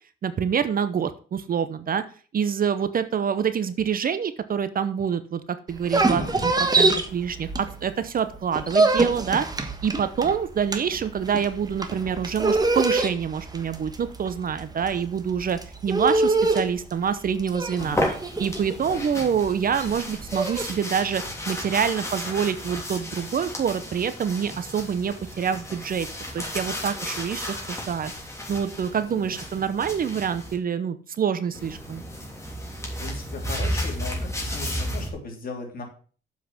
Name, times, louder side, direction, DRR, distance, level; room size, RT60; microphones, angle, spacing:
voice 1, 0.2-2.0 2.3-5.4 5.7-9.5 9.8-18.0 18.4-26.1 26.3-28.1 28.5-32.0, right 7 dB, 45° right, 12 dB, 0.8 m, -26 dB
sound 1, 5.7-8.0 8.3-20.7, right 3 dB, 20° right, 1.4 m, -25 dB
voice 2, 17.8-18.1 18.8-19.1 29.1-29.6 33.0-35.8, left 3 dB, 45° left, 1 dB, 3.3 m, -38 dB
sound 2, 17.8-30.5 31.5-35.1, equal, 15° left, 3.1 m, -33 dB
7.4 x 5.8 x 6.1 m, 0.40 s
cardioid pair, 90°, 20 cm